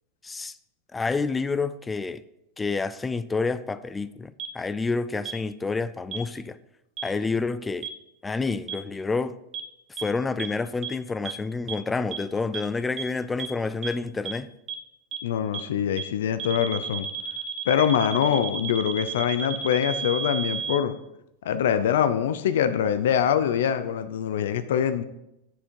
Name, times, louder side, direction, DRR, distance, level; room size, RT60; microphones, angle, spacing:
voice 1, 0.2-0.6 0.9-2.2 2.6-6.6 7.0-7.9 8.2-9.4 10.0-14.5, left 4 dB, 10° left, 0.3 m, -28 dB
sound 1, 4.4-4.5 5.2-5.3 6.1-6.2 7.0-7.1 7.8-7.9 8.7-8.8 9.5-9.6 10.0-10.1 10.4-10.5 10.8-10.9 11.2-11.3 11.7-11.8 12.1-12.2 12.5-12.6 13.0-13.1 13.4-13.5 13.8-13.9 14.2-14.3 14.7-14.8 15.1-15.2 15.5-15.6 16.0-16.1 16.4-20.8, right 8 dB, 25° right, 0.8 m, -32 dB
voice 2, 15.2-17.1 17.7-21.0 21.4-25.0, left 9 dB, 80° left, 0.6 m, -24 dB
10.0 x 6.3 x 4.7 m
supercardioid pair, 170°, 0 cm